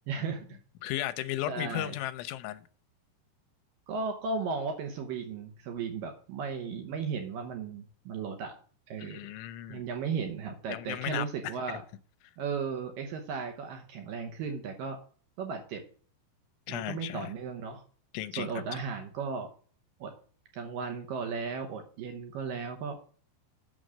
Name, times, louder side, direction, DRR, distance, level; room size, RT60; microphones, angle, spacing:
voice 1, 0.1-0.5 1.5-2.0 3.9-8.5 8.9-9.2 9.7-11.8 12.4-15.0 15.4-15.8 16.7-17.8 18.3-19.5 20.0-20.1 20.5-23.0, right 5 dB, 80° right, 2.0 m, -35 dB
voice 2, 0.8-2.6 9.0-9.8 10.7-11.3 16.7-17.3 18.1-18.5, left 14 dB, 85° left, 3.0 m, -35 dB
9.1 x 6.3 x 6.5 m
omnidirectional pair, 5.4 m